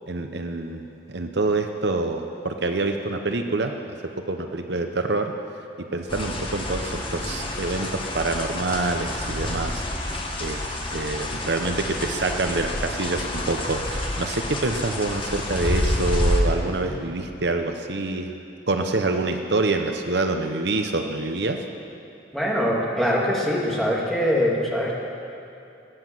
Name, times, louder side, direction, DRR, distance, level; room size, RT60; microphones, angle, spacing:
voice 1, 0.1-3.7 4.3-5.3 5.9-10.1 10.4-10.6 10.9-18.3 18.7-21.6, right 3 dB, 60° right, 5 dB, 0.8 m, -26 dB
sound 1, 6.1-16.4, left 1 dB, 30° left, 1.4 m, -28 dB
voice 2, 22.3-25.0, equal, ahead, -4 dB, 2.3 m, -23 dB
20.0 x 8.1 x 7.6 m, 2.7 s
head